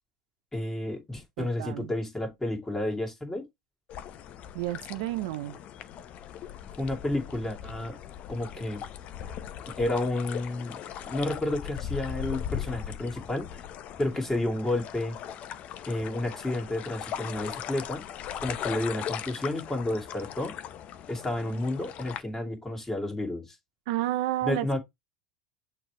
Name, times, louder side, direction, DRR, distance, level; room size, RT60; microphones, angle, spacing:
voice 1, 0.5-3.5 6.8-8.0 8.3-8.8 9.7-13.6 14.0-15.2 15.9-18.0 18.4-20.6 21.1-23.6 24.4-24.8, left 1 dB, 10° left, 2.2 m, -31 dB
voice 2, 1.4-1.9 4.5-5.6 23.9-24.8, right 15 dB, 70° right, 0.5 m, -31 dB
sound 1, 3.9-22.2, left 9 dB, 45° left, 0.8 m, -39 dB
6.4 x 3.3 x 4.7 m
hypercardioid pair, 95°, 3 cm